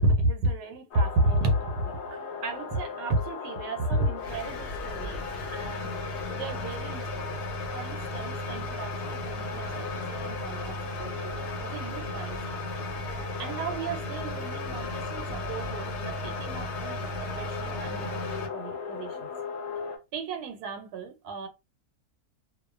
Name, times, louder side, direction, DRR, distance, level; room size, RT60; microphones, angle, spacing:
voice 1, 0.0-5.2 5.5-12.7 13.4-19.3 19.8-19.9 20.1-21.5, right 1 dB, 85° right, 1.1 m, -32 dB
sound 1, 0.9-20.0, left 5 dB, 90° left, 1.2 m, -38 dB
sound 2, 4.2-18.5, left 1 dB, 60° left, 0.8 m, -36 dB
2.6 x 2.1 x 2.3 m
omnidirectional pair, 1.6 m